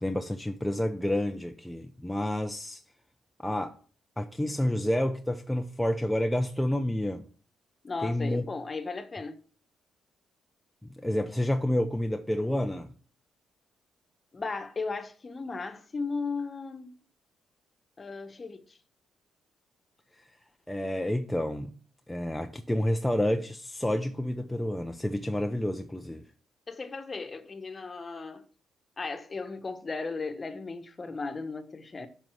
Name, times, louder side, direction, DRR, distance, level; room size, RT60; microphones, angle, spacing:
voice 1, 0.0-2.8 3.4-3.8 4.2-7.2 8.0-8.4 11.0-12.9 20.7-21.7 22.1-26.2, left 1 dB, 5° left, 0.7 m, -29 dB
voice 2, 7.8-9.4 14.3-17.0 18.0-18.8 26.7-28.4 29.0-32.1, left 4 dB, 30° left, 1.3 m, -36 dB
7.6 x 5.5 x 7.5 m
cardioid pair, 90°, 0 cm